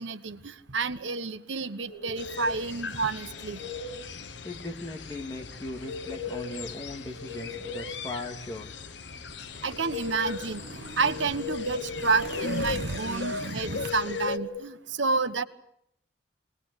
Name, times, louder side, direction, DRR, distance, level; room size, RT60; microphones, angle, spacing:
voice 1, 0.0-3.6 9.6-10.6 11.0-15.4, right 4 dB, 85° right, 10 dB, 1.3 m, -30 dB
sound 1, 1.9-2.7 3.2-4.1 5.7-6.7 7.0-8.1 9.5-10.6 11.0-12.0 13.6-14.6, left 6 dB, ahead, 6.1 m, -38 dB
sound 2, 2.2-14.4, left 4 dB, 70° left, 1.0 m, -39 dB
voice 2, 4.4-8.7, left 2 dB, 20° left, 2 dB, 2.9 m, -38 dB
sound 3, 9.3-13.9, right 2 dB, 60° right, 1.2 m, -38 dB
23.0 x 19.5 x 8.2 m, 0.74 s
head